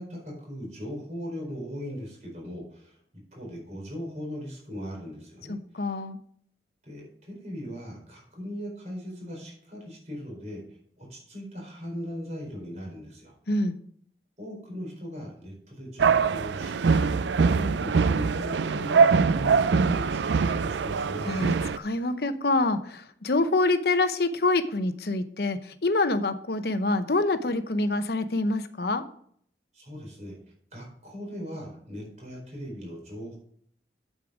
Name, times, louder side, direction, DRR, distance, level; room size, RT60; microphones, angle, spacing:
voice 1, 0.0-3.0 3.3-5.9 6.8-10.6 11.0-13.3 14.4-21.4 29.7-30.4 30.7-33.4, equal, 40° right, -1 dB, 4.4 m, -39 dB
voice 2, 5.5-6.2 13.5-13.8 21.3-29.0, left 2 dB, 60° left, 10 dB, 0.8 m, -26 dB
sound 1, 16.0-21.8, right 5 dB, 85° right, 0.4 m, -23 dB
8.5 x 7.6 x 4.9 m, 0.62 s
head